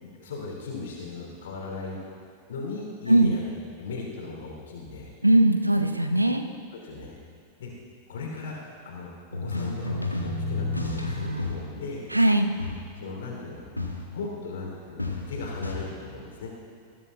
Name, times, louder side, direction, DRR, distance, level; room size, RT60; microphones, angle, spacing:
voice 1, 0.0-2.0 2.5-5.1 6.7-7.1 7.6-7.7 8.1-9.1 9.4-12.1 13.0-13.7 14.1-16.5, left 3 dB, 60° left, -1 dB, 3.4 m, -37 dB
voice 2, 5.2-6.5 12.1-12.5, right 1 dB, 85° right, 7 dB, 0.8 m, -20 dB
sound 1, 9.3-11.7 12.6-13.0 13.8-14.3 15.0-15.7, left 2 dB, 85° left, 1.4 m, -31 dB
21.0 x 15.0 x 2.4 m, 2.1 s
figure-of-eight pair, 90°, 0 cm